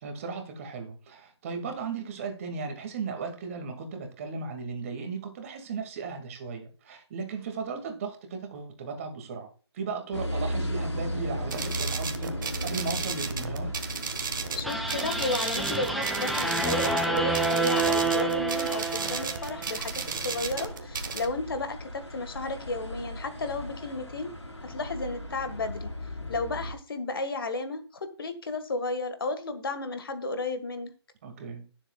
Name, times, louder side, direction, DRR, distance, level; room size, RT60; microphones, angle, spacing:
voice 1, 0.0-9.5 9.7-13.7 31.2-31.6, right 4 dB, 30° right, 5 dB, 2.1 m, -36 dB
sound 1, 10.1-26.7, equal, 90° left, 3.6 m, -37 dB
sound 2, 11.5-21.3, right 5 dB, 50° right, 1.5 m, -35 dB
voice 2, 14.5-24.3 24.6-25.9 26.3-30.9, left 3 dB, 55° left, 9 dB, 1.6 m, -33 dB
sound 3, 14.6-19.9, right 3 dB, ahead, 0.5 m, -28 dB
20.5 x 7.3 x 2.3 m, 0.37 s
figure-of-eight pair, 150°, 14 cm